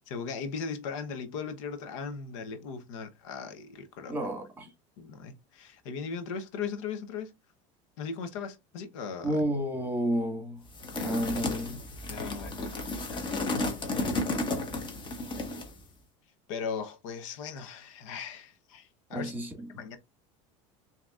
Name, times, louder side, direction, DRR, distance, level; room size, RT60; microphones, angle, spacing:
voice 1, 0.1-4.2 5.0-7.3 8.0-9.4 12.1-13.4 13.8-14.1 16.5-19.3 19.7-20.0, left 5 dB, 80° left, 0.9 m, -38 dB
voice 2, 4.1-4.7 9.2-10.6 11.0-11.8 19.1-19.7, right 1 dB, 10° right, 1.6 m, -31 dB
sound 1, 10.7-15.8, left 2 dB, 30° left, 1.2 m, -33 dB
5.9 x 2.9 x 2.4 m
supercardioid pair, 115°, 16 cm